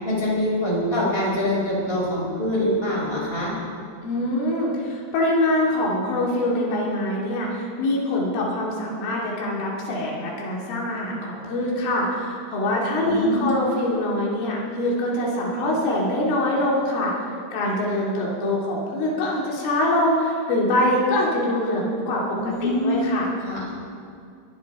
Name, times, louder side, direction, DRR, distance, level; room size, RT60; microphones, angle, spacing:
voice 1, 0.0-3.5 13.0-13.5 22.4-23.1 23.4-23.6, left 1 dB, 10° left, -4 dB, 4.4 m, -24 dB
voice 2, 4.0-17.2 17.5-23.3, left 1 dB, 90° left, -4 dB, 5.2 m, -24 dB
22.0 x 14.5 x 4.3 m, 2.4 s
omnidirectional pair, 5.4 m